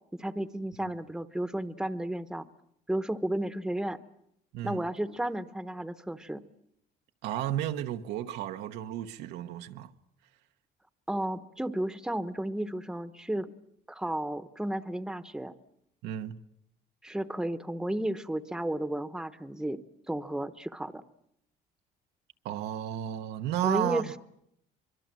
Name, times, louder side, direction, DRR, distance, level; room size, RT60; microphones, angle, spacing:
voice 1, 0.1-2.4 2.9-4.0 4.6-6.4 11.1-13.5 13.9-15.5 17.0-19.8 20.1-21.0 23.6-24.2, right 1 dB, 5° right, 0.9 m, -33 dB
voice 2, 4.5-4.8 7.2-9.9 16.0-16.4 22.4-24.1, right 11 dB, 90° right, 1.1 m, -33 dB
24.5 x 22.5 x 7.5 m
cardioid pair, 110°, 17 cm